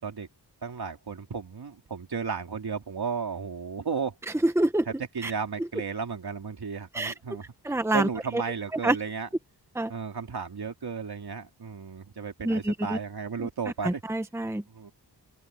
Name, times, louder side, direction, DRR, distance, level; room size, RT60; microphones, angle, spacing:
voice 1, 0.6-4.1 4.9-9.3 9.9-14.0 14.7-14.9, right 5 dB, 65° right, 3.3 m, -34 dB
voice 2, 4.4-4.9 5.2-5.3 5.6-5.7 6.9-7.1 7.6-8.4 8.7-9.0 9.7-9.9 12.4-13.0 13.4-13.5 13.8-14.6, right 1 dB, 5° right, 1.0 m, -26 dB
open air
wide cardioid pair, 120°, 42 cm